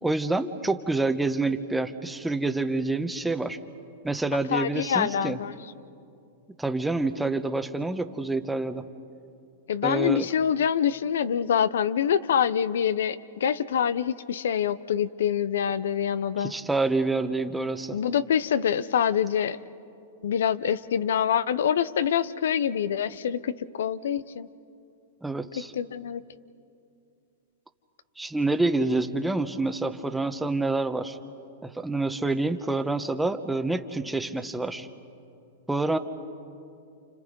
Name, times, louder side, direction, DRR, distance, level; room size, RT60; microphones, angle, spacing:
voice 1, 0.0-3.6 4.0-5.4 6.6-8.9 9.8-10.3 16.4-18.0 25.2-25.7 28.2-31.2 31.6-34.9 35.7-36.0, right 2 dB, 5° right, 9 dB, 1.0 m, -27 dB
voice 2, 4.5-5.5 9.7-16.5 17.9-19.6 20.2-24.5 25.7-26.2, left 8 dB, 80° left, 16 dB, 0.7 m, -25 dB
30.0 x 28.0 x 5.3 m, 2.6 s
hypercardioid pair, 130°, 0 cm